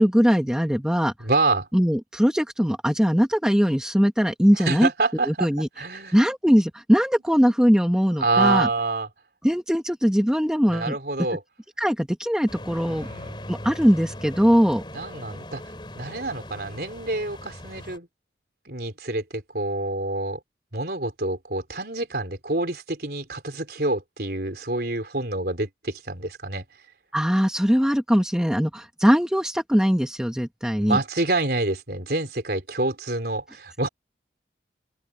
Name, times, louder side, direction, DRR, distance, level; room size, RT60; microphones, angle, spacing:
voice 1, 0.0-1.1 1.7-4.9 5.3-5.7 6.1-8.7 9.4-11.0 11.8-13.1 13.5-14.8 27.1-31.0, equal, 5° right, 1.2 m, -21 dB
voice 2, 1.2-1.7 4.6-5.5 5.8-6.2 8.2-9.1 10.7-11.4 12.9-13.4 14.9-15.6 15.9-18.1 18.7-20.4 20.7-26.6 30.8-33.9, right 2 dB, 60° right, 4.1 m, -27 dB
sound 1, 12.5-18.0, left 1 dB, 25° left, 4.0 m, -39 dB
open air
head